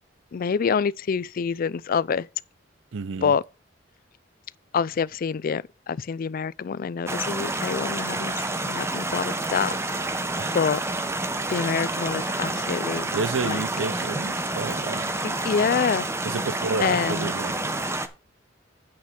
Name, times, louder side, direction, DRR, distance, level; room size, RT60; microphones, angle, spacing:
voice 1, 0.3-2.3 3.2-3.4 4.7-8.3 8.7-9.7 10.5-10.8 11.5-13.1 13.4-13.6 15.2-16.1 16.8-17.3, left 6 dB, 50° left, 0.4 m, -26 dB
voice 2, 2.9-3.3 10.4-10.6 13.1-15.1 16.2-17.9, right 4 dB, 85° right, 0.6 m, -30 dB
sound 1, 7.1-18.1, right 2 dB, 15° right, 0.9 m, -29 dB
8.7 x 5.8 x 5.8 m
head